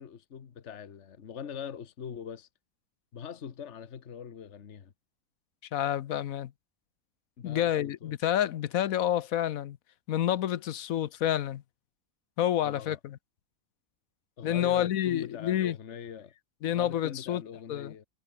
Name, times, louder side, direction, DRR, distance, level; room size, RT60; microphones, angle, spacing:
voice 1, 0.0-2.5 3.1-4.9 7.4-8.1 12.6-13.0 14.4-16.3 16.7-18.1, left 7 dB, 55° left, 1.5 m, -42 dB
voice 2, 5.7-6.5 7.4-9.8 10.1-11.6 12.4-13.2 14.4-15.8 16.6-17.4 17.7-17.9, left 11 dB, 75° left, 1.2 m, -28 dB
omnidirectional pair, 1.5 m